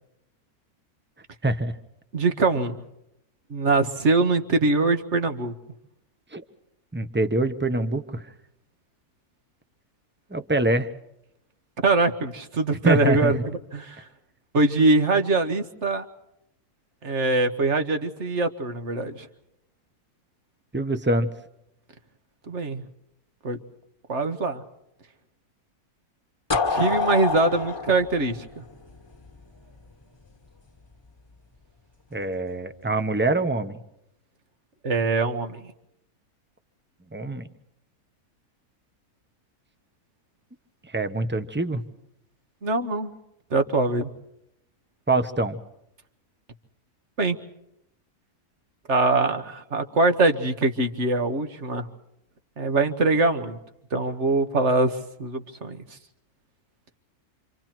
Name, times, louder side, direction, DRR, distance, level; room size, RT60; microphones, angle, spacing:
voice 1, 1.4-1.7 6.3-6.4 6.9-8.3 10.3-10.9 12.8-13.3 20.7-21.3 32.1-33.8 37.1-37.5 40.9-41.8 45.1-45.6, right 2 dB, 10° right, 9 dB, 1.0 m, -24 dB
voice 2, 2.1-2.8 3.5-5.5 11.8-13.4 13.7-14.1 14.5-16.1 17.0-19.3 22.5-22.8 23.4-23.6 24.1-24.6 26.7-28.5 34.8-35.6 42.6-43.1 43.5-44.1 47.2-47.4 48.9-51.9 52.6-53.6 53.9-55.8, right 3 dB, 50° right, 7 dB, 1.9 m, -23 dB
sound 1, 26.5-29.3, left 4 dB, 15° left, 1.9 m, -26 dB
29.0 x 26.5 x 4.5 m, 0.80 s
omnidirectional pair, 1.6 m